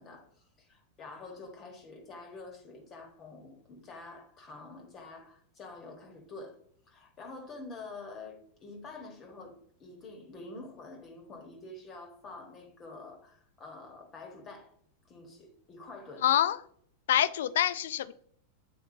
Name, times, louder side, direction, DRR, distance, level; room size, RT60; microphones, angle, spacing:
voice 1, 0.0-6.6 6.9-14.7 15.0-16.2, left 3 dB, 30° left, 1.2 m, -47 dB
voice 2, 16.2-16.6 17.1-18.1, left 11 dB, 60° left, 0.3 m, -26 dB
8.0 x 4.4 x 2.6 m
figure-of-eight pair, 90°, 0 cm